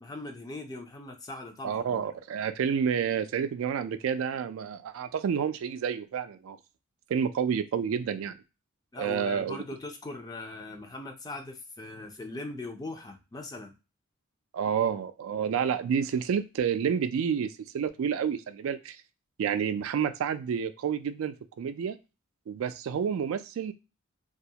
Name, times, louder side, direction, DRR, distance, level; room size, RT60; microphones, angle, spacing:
voice 1, 0.0-2.1 8.9-13.7, left 2 dB, 20° left, 5 dB, 0.4 m, -40 dB
voice 2, 1.6-6.6 7.1-8.4 9.0-9.6 14.5-19.0 19.4-22.0 22.5-23.7, right 7 dB, 85° right, 10 dB, 0.3 m, -29 dB
2.3 x 2.0 x 2.7 m, 0.28 s
head